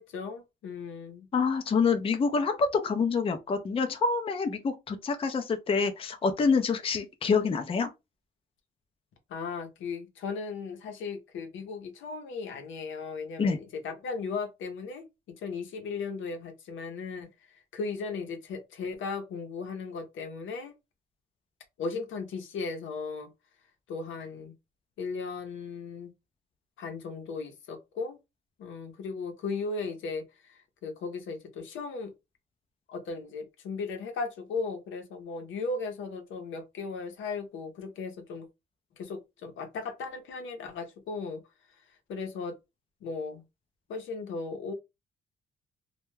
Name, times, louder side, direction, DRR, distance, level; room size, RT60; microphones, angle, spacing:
voice 1, 0.0-1.3 9.3-15.1 15.4-17.3 17.7-20.7 21.8-23.3 23.9-24.5 25.0-26.1 26.8-28.2 28.6-32.1 32.9-38.5 39.0-41.4 42.1-42.6 43.0-43.4 43.9-44.7, left 4 dB, 75° left, 0.7 m, -36 dB
voice 2, 1.3-7.9 13.4-13.6, left 5 dB, 30° left, 0.4 m, -27 dB
2.2 x 2.2 x 3.1 m
cardioid pair, 90°, 20 cm